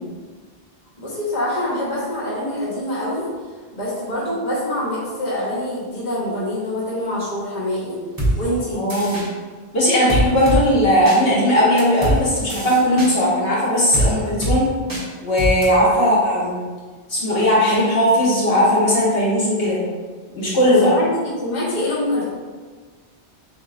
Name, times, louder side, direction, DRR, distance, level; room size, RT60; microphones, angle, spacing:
voice 1, 0.9-3.3 3.7-8.0 8.4-8.8 20.6-22.2, left 1 dB, 45° left, -7 dB, 1.2 m, -25 dB
sound 1, 8.2-8.3 8.9-9.3 10.1-10.6 11.1-11.2 11.8-12.2 12.5-13.1 13.9-14.1 14.4-14.6 14.9-15.0 15.4-15.7, right 1 dB, 20° right, 0.9 m, -21 dB
voice 2, 8.7-9.2 9.7-14.7 15.2-16.5 17.1-19.8 20.3-20.9, equal, 65° left, -7 dB, 1.4 m, -17 dB
7.2 x 2.8 x 2.5 m, 1.4 s
omnidirectional pair, 1.1 m